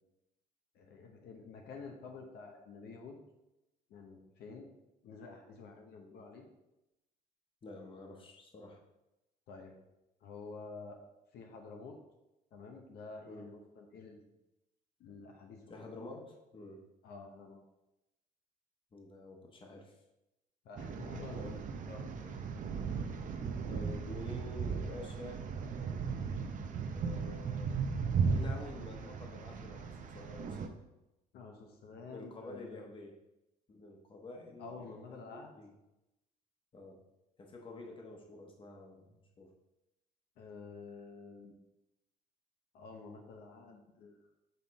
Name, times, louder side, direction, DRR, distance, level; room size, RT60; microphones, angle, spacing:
voice 1, 0.7-3.2 3.9-4.7 5.0-6.5 9.5-9.7 10.2-11.0 11.3-12.0 12.5-14.3 15.0-15.9 17.0-17.6 20.6-21.6 21.9-22.4 22.9-23.0 31.3-32.8 34.6-35.5 40.4-41.5 42.7-44.2, left 4 dB, 70° left, 2 dB, 0.9 m, -49 dB
voice 2, 7.6-8.8 13.3-13.5 15.7-16.8 18.9-20.0 21.3-21.6 23.7-25.4 26.9-27.8 28.3-30.8 32.1-33.2 33.7-35.7 36.7-37.0 37.4-39.5, left 2 dB, 30° left, 2 dB, 1.1 m, -49 dB
sound 1, 20.8-30.7, right 5 dB, 50° right, 0.7 m, -37 dB
6.6 x 3.8 x 4.1 m, 0.93 s
cardioid pair, 110°, 17 cm